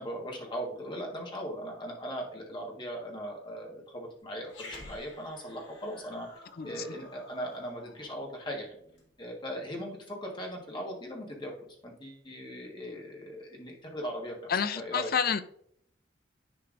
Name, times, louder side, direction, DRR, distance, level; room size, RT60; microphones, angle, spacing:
voice 1, 0.0-6.3 6.6-8.7 9.2-11.5 11.8-14.4 14.7-15.1, equal, 25° left, 0 dB, 1.5 m, -39 dB
Growling, 4.5-9.1, left 2 dB, 75° left, 1.9 m, -51 dB
voice 2, 14.5-15.4, left 7 dB, 55° left, 13 dB, 0.4 m, -29 dB
10.5 x 4.5 x 2.6 m, 0.68 s
head